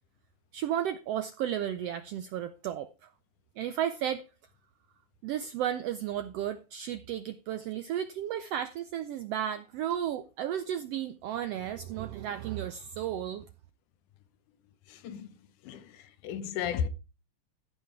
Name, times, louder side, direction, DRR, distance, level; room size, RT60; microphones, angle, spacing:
voice 1, 0.5-3.1 3.6-4.2 5.2-13.5, right 10 dB, 80° right, 1.4 m, -33 dB
voice 2, 14.9-15.4 15.6-16.9, left 8 dB, 80° left, 2.4 m, -34 dB
14.5 x 5.7 x 4.7 m
omnidirectional pair, 3.5 m